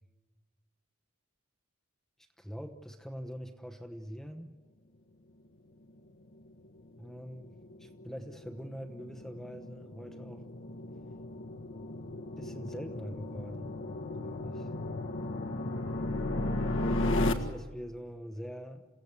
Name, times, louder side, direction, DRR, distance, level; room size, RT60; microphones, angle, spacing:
voice 1, 2.2-4.6 7.0-10.5 12.4-13.7 14.2-14.7 15.8-16.3 17.3-18.9, equal, ahead, 5 dB, 1.1 m, -44 dB
sound 1, 6.2-17.3, left 2 dB, 60° left, 1.7 m, -35 dB
28.5 x 16.5 x 8.3 m, 1.3 s
head